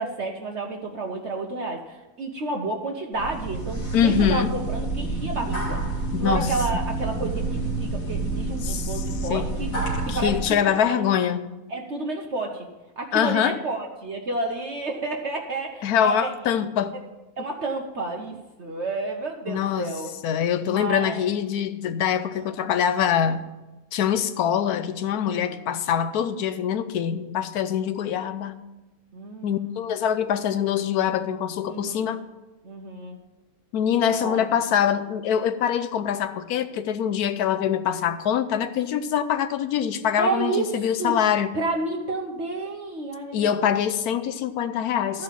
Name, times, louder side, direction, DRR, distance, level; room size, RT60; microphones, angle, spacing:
voice 1, 0.0-5.8 6.2-9.7 10.1-10.6 10.9-11.0 11.7-12.7 13.0-16.3 17.4-20.1 20.6-21.3 22.3-22.5 25.2-25.6 29.1-29.9 31.7-32.2 32.6-33.2 34.2-34.4 40.2-41.2 41.5-43.7 45.1-45.2, right 3 dB, 50° right, 1 dB, 1.1 m, -31 dB
sound 1, 3.1-10.4, right 3 dB, 60° left, 2.5 m, -28 dB
voice 2, 3.9-4.5 6.1-6.5 8.6-9.0 9.3-9.5 10.1-11.5 13.1-13.6 15.8-16.9 19.5-19.9 20.2-23.5 23.9-28.6 29.4-32.2 33.7-41.5 43.3-45.2, left 9 dB, 80° left, 11 dB, 1.2 m, -24 dB
13.5 x 5.1 x 7.4 m, 1.1 s
omnidirectional pair, 1.6 m